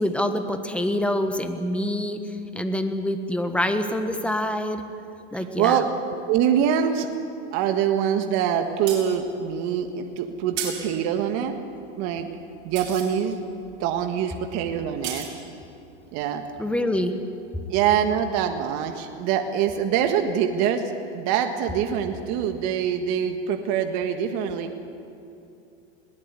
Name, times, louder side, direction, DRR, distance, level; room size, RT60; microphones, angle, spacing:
voice 1, 0.0-2.2 2.5-4.8 5.3-5.8 16.6-17.1, left 1 dB, 5° left, 7 dB, 1.5 m, -26 dB
voice 2, 5.3-7.1 7.5-11.5 12.0-12.3 12.6-13.5 13.8-15.3 16.1-16.4 17.7-20.8 21.1-24.7, right 8 dB, 50° right, 6 dB, 1.7 m, -24 dB
sound 1, 8.6-17.2 17.6-17.7, right 8 dB, 70° right, 6.5 m, -38 dB
21.5 x 18.5 x 8.3 m, 2.7 s
supercardioid pair, 125°, 34 cm